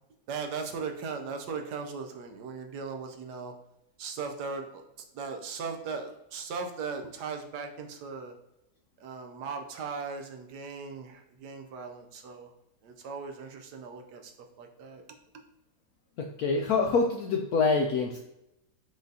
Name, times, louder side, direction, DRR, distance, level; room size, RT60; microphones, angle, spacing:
voice 1, 0.3-3.5 4.0-4.8 5.1-8.3 9.0-12.5 12.8-14.3 14.6-15.0, right 5 dB, 75° right, 4 dB, 1.1 m, -38 dB
voice 2, 16.2-18.2, left 4 dB, 75° left, 2 dB, 0.8 m, -26 dB
4.8 x 4.0 x 2.7 m, 0.88 s
omnidirectional pair, 2.0 m